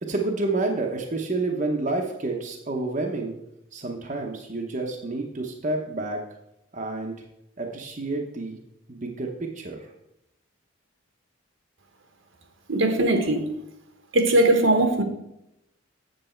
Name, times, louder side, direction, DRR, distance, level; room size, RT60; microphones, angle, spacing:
voice 1, 0.0-3.4 3.7-6.3 6.7-7.2 7.6-8.6 8.9-9.9, right 2 dB, 35° right, 1 dB, 0.9 m, -29 dB
voice 2, 12.7-13.4 14.1-15.0, right 1 dB, 70° right, 5 dB, 1.2 m, -20 dB
7.8 x 7.5 x 4.4 m, 0.84 s
head